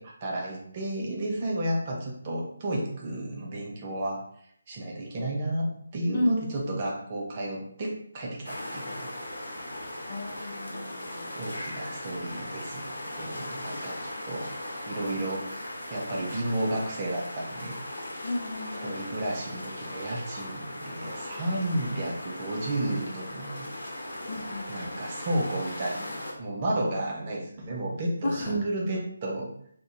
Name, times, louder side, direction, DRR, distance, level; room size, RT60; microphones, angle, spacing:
voice 1, 0.0-4.2 4.7-9.1 11.4-14.5 14.9-15.5 15.9-17.8 18.8-23.7 24.7-29.5, right 1 dB, 30° right, -1 dB, 0.5 m, -32 dB
voice 2, 6.1-6.9 9.8-11.3 18.2-19.0 24.3-24.9 28.2-28.6, left 1 dB, 40° left, -1 dB, 0.6 m, -33 dB
sound 1, 8.4-26.3, left 1 dB, 60° left, 0.9 m, -38 dB
2.5 x 2.2 x 3.8 m, 0.66 s
figure-of-eight pair, 150°, 0 cm